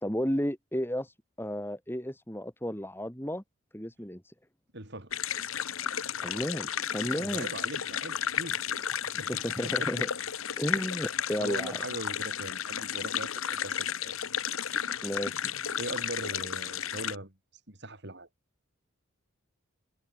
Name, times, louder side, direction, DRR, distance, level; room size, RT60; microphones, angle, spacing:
voice 1, 0.0-3.4 3.7-4.3 6.2-7.5 9.3-10.1 10.6-11.8 15.0-15.5, equal, 10° left, 3.4 m, -33 dB
voice 2, 4.7-5.1 7.0-8.6 9.0-9.9 10.7-10.9 11.4-14.1 15.8-17.3 17.7-18.3, right 1 dB, 55° right, 4.6 m, -40 dB
sound 1, 5.1-17.2, left 9 dB, 75° left, 1.2 m, -33 dB
head